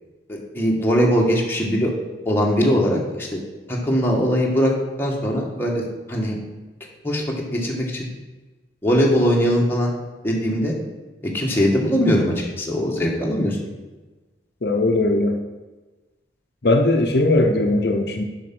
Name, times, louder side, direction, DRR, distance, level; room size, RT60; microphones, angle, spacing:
voice 1, 0.3-1.9 2.2-3.4 3.7-4.7 5.0-5.8 6.1-6.4 7.0-7.2 7.5-8.1 8.8-9.9 10.2-10.7 11.3-13.6, equal, 15° left, -2 dB, 1.5 m, -20 dB
voice 2, 14.6-15.4 16.6-18.2, left 2 dB, 60° left, 3 dB, 0.7 m, -19 dB
7.6 x 5.7 x 6.1 m, 1.2 s
head